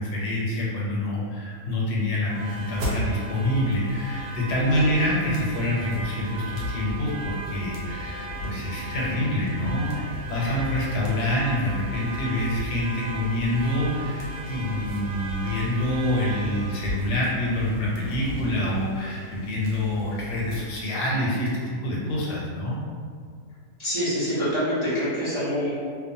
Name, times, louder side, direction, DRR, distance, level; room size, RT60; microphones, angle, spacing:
voice 1, 0.0-22.7, left 1 dB, 85° left, -5 dB, 1.3 m, -26 dB
sound 1, 2.3-20.6, right 1 dB, 75° right, 1.1 m, -35 dB
voice 2, 23.8-25.7, equal, 45° right, -13 dB, 0.3 m, -26 dB
2.8 x 2.1 x 2.7 m, 2.1 s
omnidirectional pair, 1.7 m